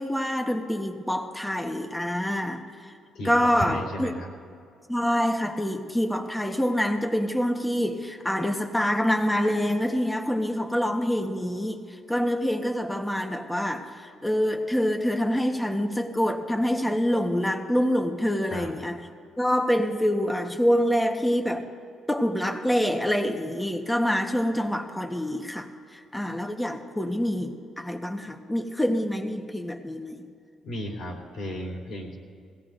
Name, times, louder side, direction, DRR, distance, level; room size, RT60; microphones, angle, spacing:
voice 1, 0.0-2.9 3.2-4.1 4.9-19.0 19.4-21.6 22.1-30.2, equal, 5° left, 4 dB, 1.2 m, -26 dB
voice 2, 3.1-4.3 18.5-18.8 30.6-32.1, equal, 70° left, -1 dB, 3.4 m, -34 dB
21.5 x 17.0 x 2.6 m, 2.4 s
cardioid pair, 80°, 0 cm